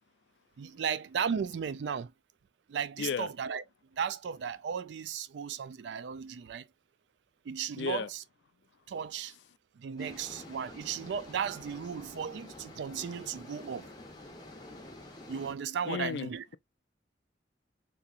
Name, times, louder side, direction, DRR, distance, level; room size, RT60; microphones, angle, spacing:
voice 1, 0.6-2.1 2.7-3.6 4.0-6.6 7.5-8.2 8.9-9.3 9.8-13.9 15.3-16.4, right 7 dB, 70° right, 0.3 m, -35 dB
voice 2, 3.0-3.3 7.8-8.1 15.8-16.6, left 6 dB, 65° left, 0.3 m, -34 dB
sound 1, 10.0-15.5, left 1 dB, 20° left, 0.8 m, -48 dB
3.4 x 2.9 x 2.4 m
head